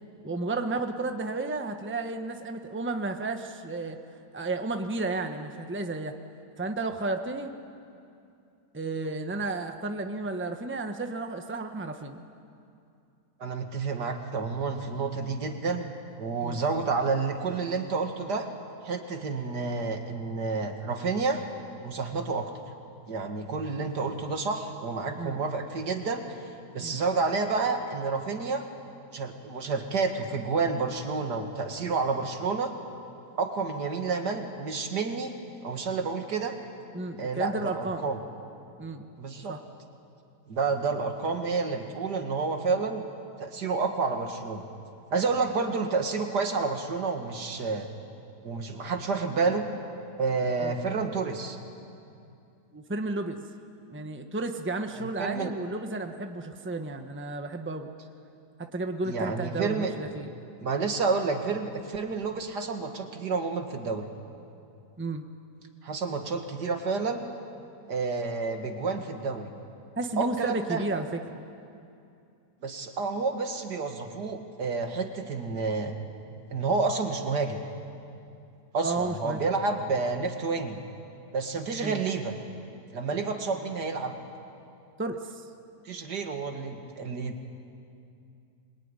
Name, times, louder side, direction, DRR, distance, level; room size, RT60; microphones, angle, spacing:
voice 1, 0.2-4.0 4.3-6.1 6.6-7.5 8.7-12.2 16.4-16.6 25.1-25.4 26.8-27.0 36.9-38.1 38.8-39.1 39.5-39.6 50.6-50.7 52.7-53.4 53.9-57.9 58.7-60.3 65.0-65.2 70.0-71.4 78.8-79.4 81.8-82.0 85.0-85.2, right 2 dB, 10° right, 5 dB, 1.1 m, -32 dB
voice 2, 13.4-18.5 18.8-21.4 21.8-22.5 23.1-26.4 26.7-28.6 29.1-32.7 33.4-35.3 35.6-36.5 37.2-38.2 39.2-39.6 40.5-43.1 43.4-44.6 45.1-47.9 48.4-49.7 50.2-51.6 55.0-55.5 59.1-59.9 60.6-64.1 65.8-67.2 67.9-69.5 70.2-70.8 72.6-75.9 76.5-77.6 78.7-80.8 81.3-82.3 82.9-84.1 85.9-87.4, right 4 dB, 75° right, 5 dB, 2.4 m, -29 dB
25.5 x 22.0 x 9.9 m, 2.5 s
omnidirectional pair, 1.8 m